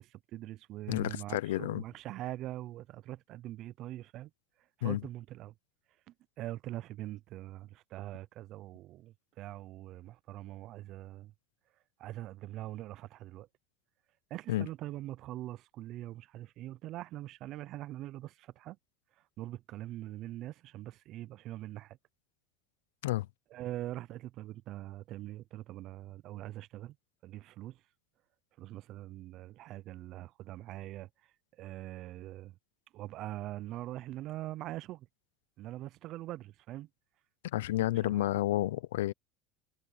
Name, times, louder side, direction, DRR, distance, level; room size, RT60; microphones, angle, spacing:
voice 1, 0.0-4.3 4.8-5.5 6.1-11.3 12.0-13.5 14.3-18.8 19.4-22.0 23.5-27.0 27.2-27.8 28.6-32.6 32.9-35.1 35.6-36.9 38.0-38.3, right 15 dB, 55° right, 0.5 m, -43 dB
voice 2, 0.9-1.8 4.8-5.0 14.5-14.7 23.0-23.3 37.4-39.1, left 15 dB, 90° left, 0.6 m, -30 dB
supercardioid pair, 110°, 0 cm